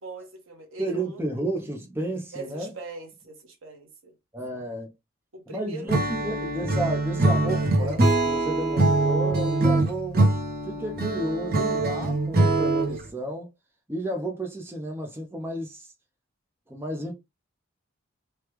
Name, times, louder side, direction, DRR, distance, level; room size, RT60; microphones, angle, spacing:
voice 1, 0.0-1.2 2.3-4.1 5.3-5.9, right 3 dB, 75° right, 1.1 m, -41 dB
voice 2, 0.8-2.7 4.3-4.9 5.5-10.4 10.7-13.5 13.9-15.9 16.7-17.1, right 1 dB, 10° right, 0.5 m, -32 dB
Acoustic guitar / Strum, 5.9-13.1, right 2 dB, 45° right, 0.7 m, -23 dB
3.3 x 2.2 x 3.0 m
head